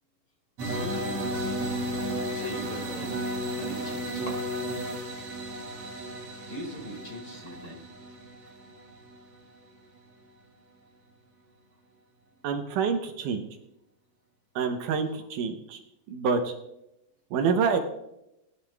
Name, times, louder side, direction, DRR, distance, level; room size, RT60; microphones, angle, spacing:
voice 1, 0.6-1.3 2.2-4.6 4.9-5.1 6.5-7.8 8.4-8.5, equal, 35° left, 0 dB, 2.3 m, -41 dB
sound 1, 0.6-9.4, equal, 50° right, 3.2 m, -33 dB
voice 2, 12.4-13.5 14.6-15.8 16.1-16.5 17.3-17.8, right 5 dB, 75° right, 6 dB, 2.2 m, -27 dB
18.0 x 10.5 x 2.3 m, 0.85 s
omnidirectional pair, 4.0 m